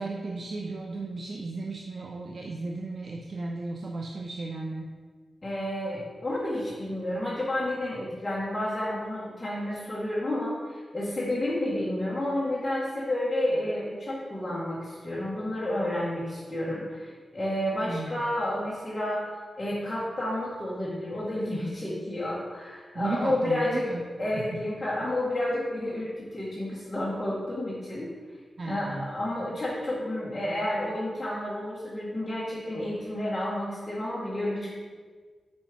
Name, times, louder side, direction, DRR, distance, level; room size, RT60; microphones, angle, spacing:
voice 1, 0.0-4.9 17.9-18.3 22.9-24.1 24.3-24.6 28.6-29.1, right 3 dB, 55° right, 1 dB, 0.6 m, -35 dB
voice 2, 5.4-28.1 28.6-34.7, left 1 dB, 25° left, -8 dB, 2.0 m, -30 dB
5.5 x 5.2 x 5.2 m, 1.5 s
cardioid pair, 50°, 0 cm